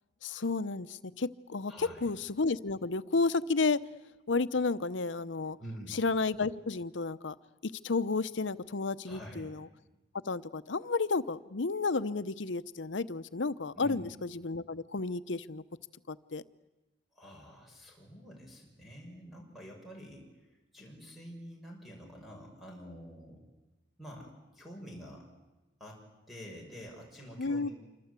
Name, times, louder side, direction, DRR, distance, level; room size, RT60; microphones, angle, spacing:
voice 1, 0.2-3.8 4.3-5.6 5.9-7.3 7.6-9.7 10.3-15.6 16.1-16.4 27.4-27.7, left 3 dB, 85° left, 14 dB, 0.9 m, -32 dB
voice 2, 1.7-2.1 5.6-6.0 9.1-9.5 13.8-14.1 17.1-20.2 20.7-23.4 24.0-24.3 24.5-25.3 25.8-27.7, equal, ahead, -1 dB, 5.9 m, -47 dB
27.5 x 24.5 x 8.3 m, 1.1 s
head